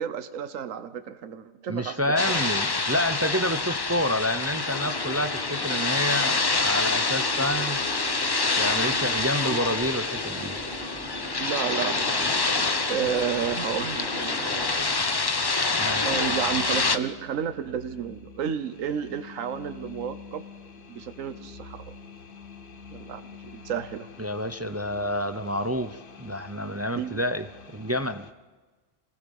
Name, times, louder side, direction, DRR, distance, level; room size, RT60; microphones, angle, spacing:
voice 1, 0.0-2.5 9.5-9.6 11.4-12.4 12.9-14.4 16.0-20.5 20.9-21.9 22.9-24.1 26.9-27.2, right 8 dB, 80° right, 11 dB, 1.3 m, -32 dB
voice 2, 1.7-7.8 8.6-10.5 15.8-16.2 24.2-28.3, left 1 dB, 25° right, 11 dB, 0.3 m, -28 dB
sound 1, 2.2-17.0, left 3 dB, 25° left, 0.6 m, -27 dB
sound 2, 4.5-14.7, left 1 dB, 65° left, 4.9 m, -39 dB
sound 3, 16.0-28.3, left 5 dB, 45° left, 1.1 m, -46 dB
28.0 x 19.0 x 5.4 m, 1.3 s
omnidirectional pair, 1.3 m